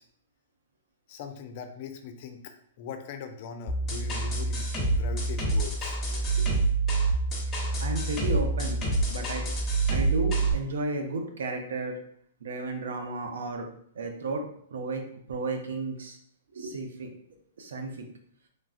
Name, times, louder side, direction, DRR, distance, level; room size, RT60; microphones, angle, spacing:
voice 1, 1.1-6.0, left 6 dB, 50° left, 7 dB, 0.4 m, -41 dB
sound 1, 3.7-10.5, right 3 dB, 20° left, 0.9 m, -27 dB
voice 2, 6.1-6.5 7.8-8.8 9.1-9.4 9.9-12.0 12.4-13.7 13.9-14.4 14.7-15.0 15.3-16.2 16.5-17.1 17.6-18.0, right 2 dB, 75° right, 4 dB, 0.6 m, -33 dB
3.2 x 2.4 x 2.4 m, 0.64 s
hypercardioid pair, 125°, 0 cm